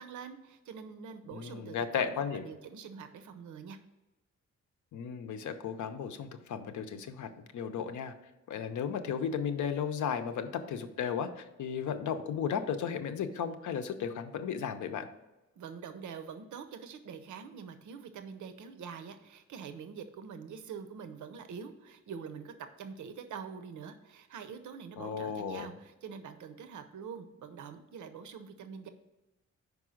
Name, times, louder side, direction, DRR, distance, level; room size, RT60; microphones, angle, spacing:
voice 1, 0.0-3.8 15.6-28.9, right 6 dB, 85° right, 9 dB, 0.7 m, -45 dB
voice 2, 1.3-2.4 4.9-8.1 8.5-15.1 25.0-25.7, left 7 dB, 85° left, 8 dB, 0.7 m, -35 dB
5.4 x 4.8 x 6.2 m, 1.0 s
wide cardioid pair, 160°, 29 cm